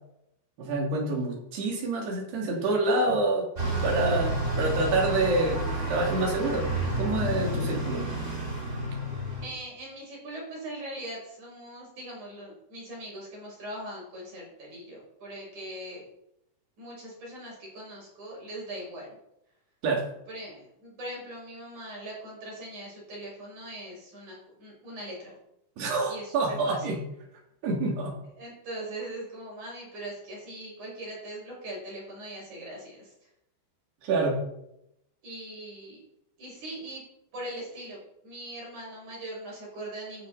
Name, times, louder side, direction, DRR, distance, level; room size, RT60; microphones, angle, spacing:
voice 1, 0.6-3.4 3.8-6.7 7.0-8.0 19.8-20.0 25.8-27.0 27.6-28.1 34.0-34.4, right 2 dB, 55° right, 0 dB, 4.9 m, -27 dB
Bus, 3.6-9.5, right 1 dB, 15° right, 2.9 m, -30 dB
voice 2, 9.4-16.1 16.8-19.1 20.3-25.4 26.1-27.0 28.4-33.1 35.2-36.0 36.4-37.0 37.3-40.3, right 1 dB, 35° right, -3 dB, 7.6 m, -40 dB
15.5 x 13.0 x 4.4 m, 0.83 s
omnidirectional pair, 5.9 m